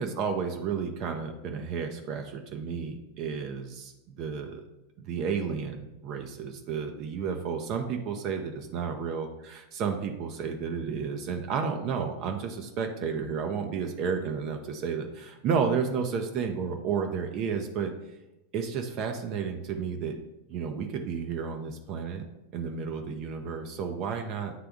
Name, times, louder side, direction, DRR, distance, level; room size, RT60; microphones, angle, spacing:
voice 1, 0.0-4.6 5.0-17.9 18.5-20.2 20.5-22.2 22.5-24.5, right 6 dB, 40° right, 4 dB, 0.6 m, -32 dB
9.3 x 3.4 x 3.5 m, 0.95 s
figure-of-eight pair, 90°, 0 cm